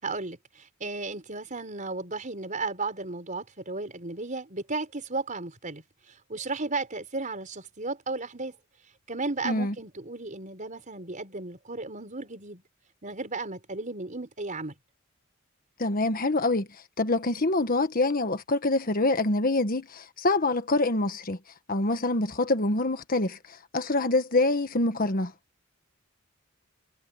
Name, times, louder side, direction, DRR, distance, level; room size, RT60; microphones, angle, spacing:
voice 1, 0.0-5.8 6.3-8.6 9.1-12.6 13.0-14.7, right 3 dB, 40° right, 5.2 m, -34 dB
voice 2, 15.8-16.7 17.0-21.4 21.7-25.3, left 2 dB, 45° left, 1.4 m, -25 dB
head